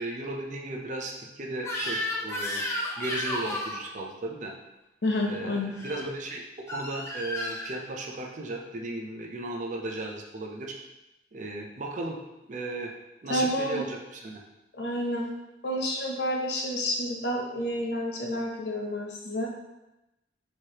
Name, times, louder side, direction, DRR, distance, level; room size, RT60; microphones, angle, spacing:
voice 1, 0.0-2.6 3.0-4.5 5.3-10.7 11.3-12.2 12.5-12.9 13.2-14.4, right 2 dB, 45° right, 1 dB, 0.5 m, -35 dB
Crying sobbing / Screech, 1.6-3.8 5.7-6.0 6.7-7.7, left 1 dB, 15° left, 0.6 m, -32 dB
voice 2, 5.0-5.7 13.3-13.8 14.8-15.3 15.6-19.5, left 1 dB, 65° left, -1 dB, 0.7 m, -29 dB
4.7 x 3.0 x 2.9 m, 0.95 s
head